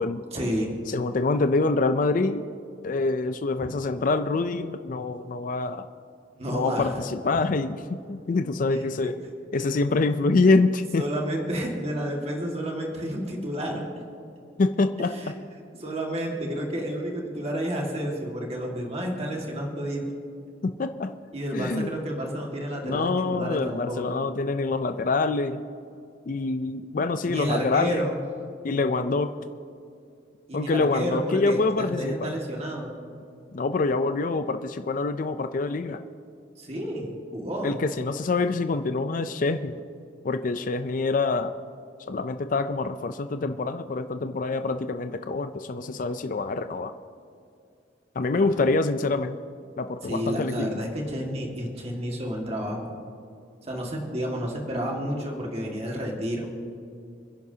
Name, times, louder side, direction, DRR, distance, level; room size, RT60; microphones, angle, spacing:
voice 1, 0.3-0.7 6.3-7.0 8.7-9.1 9.6-9.7 11.0-13.9 15.1-15.3 15.8-20.1 21.3-24.0 27.3-28.2 30.5-32.9 36.6-37.8 48.3-48.6 50.0-52.9 53.6-56.5, equal, 35° right, 0 dB, 1.8 m, -30 dB
voice 2, 0.9-2.5 2.8-5.9 6.5-9.1 9.5-11.0 14.6-15.3 20.6-21.1 21.5-21.9 22.8-25.6 26.3-28.0 28.6-29.3 30.5-32.3 33.5-36.0 37.6-39.8 40.2-41.5 42.1-46.9 48.2-49.4 49.8-50.7, left 3 dB, 45° left, 9 dB, 0.4 m, -25 dB
27.5 x 10.5 x 2.8 m, 2.4 s
head